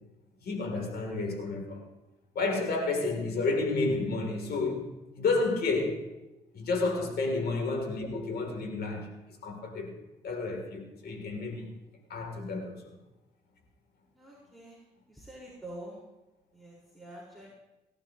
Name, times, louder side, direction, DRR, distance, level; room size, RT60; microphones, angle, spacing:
voice 1, 0.4-1.8 2.3-6.0 6.5-9.9 10.2-11.7 12.1-12.9, left 3 dB, 65° left, 3 dB, 2.8 m, -31 dB
voice 2, 14.2-14.8 15.1-16.0 16.5-17.5, right 1 dB, ahead, -6 dB, 4.4 m, -46 dB
18.0 x 11.5 x 2.9 m, 0.99 s
supercardioid pair, 50°, 17 cm